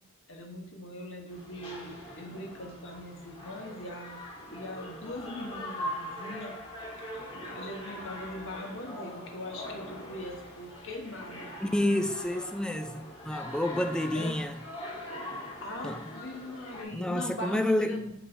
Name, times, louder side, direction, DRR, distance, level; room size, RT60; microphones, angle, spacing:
voice 1, 0.3-4.2 4.5-6.6 6.9-7.3 7.5-11.5 14.1-14.4 15.6-18.1, left 1 dB, 65° left, 1.3 m, -41 dB
sound 1, 1.3-16.8, left 1 dB, 25° left, 1.6 m, -42 dB
voice 2, 11.6-14.6 15.8-16.0 16.9-18.1, left 1 dB, 5° left, 0.3 m, -29 dB
5.8 x 5.5 x 3.6 m
head